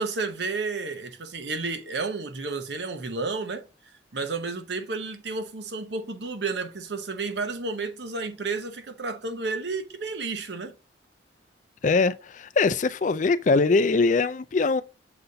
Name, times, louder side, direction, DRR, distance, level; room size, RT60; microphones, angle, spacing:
voice 1, 0.0-3.7 4.1-10.7, right 3 dB, 65° right, 0.9 m, -31 dB
voice 2, 11.8-14.8, left 3 dB, 40° left, 0.4 m, -22 dB
6.9 x 4.0 x 3.8 m
head